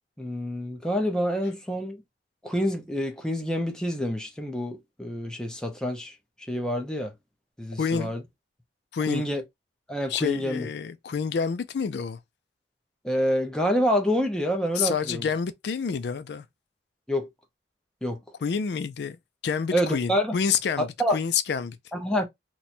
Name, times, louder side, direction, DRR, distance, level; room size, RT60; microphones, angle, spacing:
voice 1, 0.2-2.0 2.4-6.1 6.5-7.1 7.6-8.2 9.1-9.4 9.9-10.7 13.0-15.2 17.1-17.3 18.0-18.2 19.7-20.4 20.8-21.2 21.9-22.3, equal, 5° left, 0.6 m, -27 dB
voice 2, 7.8-8.1 8.9-9.3 10.1-12.2 14.8-16.4 18.4-19.2 19.4-21.8, left 6 dB, 70° left, 0.4 m, -28 dB
3.0 x 2.2 x 4.1 m
head